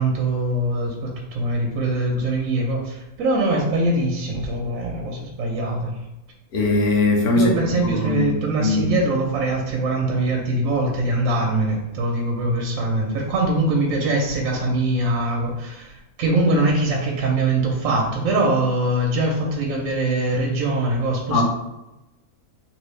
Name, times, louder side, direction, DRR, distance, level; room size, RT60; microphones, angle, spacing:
voice 1, 0.0-6.0 7.3-21.4, right 2 dB, 70° right, 0 dB, 1.0 m, -22 dB
voice 2, 6.5-7.5 7.8-8.3 8.6-8.9 21.3-21.4, left 3 dB, 85° left, 0 dB, 1.3 m, -20 dB
2.9 x 2.7 x 3.2 m, 0.95 s
omnidirectional pair, 1.6 m